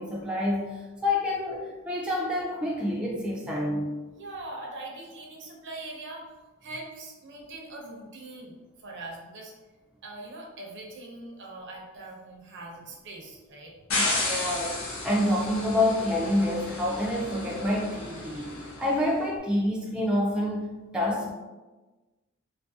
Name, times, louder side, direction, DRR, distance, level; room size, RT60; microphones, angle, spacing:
voice 1, 0.0-3.9 13.9-14.8 15.0-18.5 18.8-21.3, left 1 dB, 5° right, -4 dB, 0.3 m, -27 dB
voice 2, 4.2-6.3 6.6-9.5 10.0-13.7, right 2 dB, 60° right, -1 dB, 0.6 m, -42 dB
sound 1, 13.9-19.0, left 2 dB, 70° left, 0.6 m, -33 dB
2.6 x 2.4 x 2.6 m, 1.2 s
head